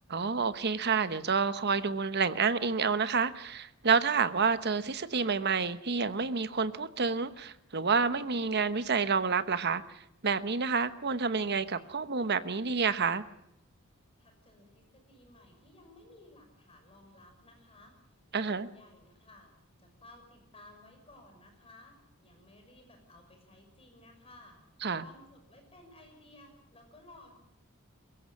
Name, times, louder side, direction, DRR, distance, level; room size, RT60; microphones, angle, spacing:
voice 1, 0.1-9.8 10.2-13.2 18.3-18.7 24.8-25.0, right 5 dB, 50° right, 13 dB, 1.0 m, -29 dB
voice 2, 14.2-18.0 18.4-19.5 19.8-24.6 24.9-27.3, left 2 dB, 25° left, 4 dB, 6.0 m, -56 dB
22.5 x 15.5 x 9.7 m, 0.81 s
head